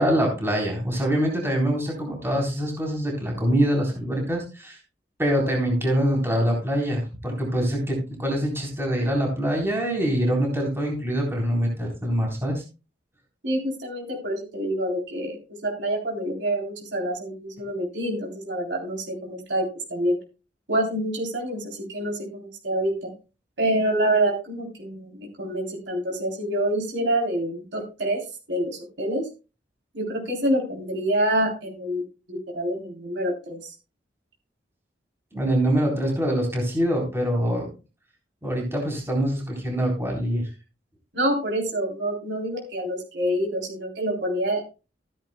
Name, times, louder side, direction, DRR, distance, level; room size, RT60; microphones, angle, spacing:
voice 1, 0.0-4.8 5.2-12.6 35.3-37.7 38.4-40.5, equal, 15° right, -1 dB, 3.9 m, -24 dB
voice 2, 13.4-20.2 20.7-23.1 23.6-28.2 28.5-29.3 29.9-33.7 41.1-44.6, right 1 dB, 85° right, 0 dB, 3.6 m, -27 dB
15.5 x 10.5 x 2.3 m, 0.31 s
head